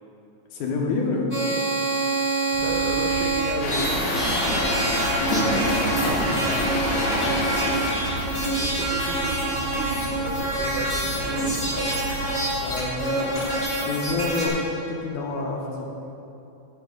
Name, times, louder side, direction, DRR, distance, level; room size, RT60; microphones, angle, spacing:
voice 1, 0.5-1.3 12.6-13.4 13.8-15.8, left 3 dB, 80° left, -1 dB, 2.6 m, -28 dB
sound 1, 1.3-14.5, right 2 dB, 15° left, 1.9 m, -26 dB
sound 2, 2.5-12.8, right 2 dB, 60° right, 1.5 m, -35 dB
voice 2, 2.6-3.9 4.5-6.6 6.9-7.8 8.1-11.9, right 3 dB, 80° right, 0 dB, 1.3 m, -35 dB
Truck, 3.6-8.4, left 1 dB, 60° left, 2.7 m, -26 dB
15.5 x 6.0 x 3.9 m, 2.8 s
omnidirectional pair, 3.5 m